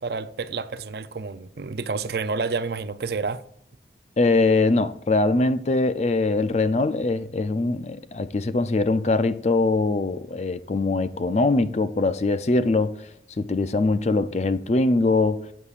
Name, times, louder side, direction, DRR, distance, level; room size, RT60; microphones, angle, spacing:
voice 1, 0.0-3.4, right 4 dB, 60° right, 0.5 m, -29 dB
voice 2, 4.2-13.0 13.4-15.5, left 3 dB, 40° left, 0.4 m, -22 dB
12.5 x 8.2 x 2.5 m
head